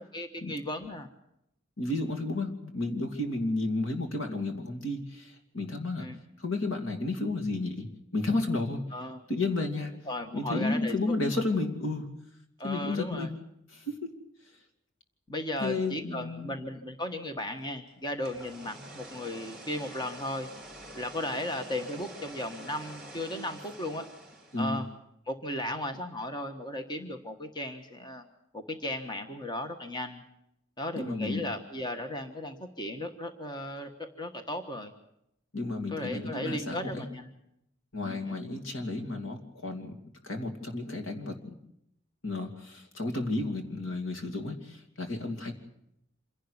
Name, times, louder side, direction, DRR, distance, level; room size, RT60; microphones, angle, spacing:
voice 1, 0.1-1.1 6.0-6.1 8.9-9.2 10.1-11.0 12.6-13.3 15.3-20.5 20.9-24.1 24.6-24.8 25.3-28.2 28.5-30.2 30.8-34.9 35.9-37.3 38.0-38.3, left 1 dB, 20° left, 6 dB, 1.4 m, -36 dB
voice 2, 1.8-6.1 6.4-7.9 8.1-8.8 9.3-9.9 10.3-12.1 12.6-13.4 13.7-14.1 15.6-16.5 24.5-24.8 30.9-31.5 35.5-37.1 37.9-39.9 40.2-41.5 42.2-45.5, left 2 dB, 80° left, 5 dB, 2.8 m, -32 dB
sound 1, 18.0-24.8, right 1 dB, ahead, 4.1 m, -47 dB
26.5 x 11.5 x 9.8 m, 0.80 s
head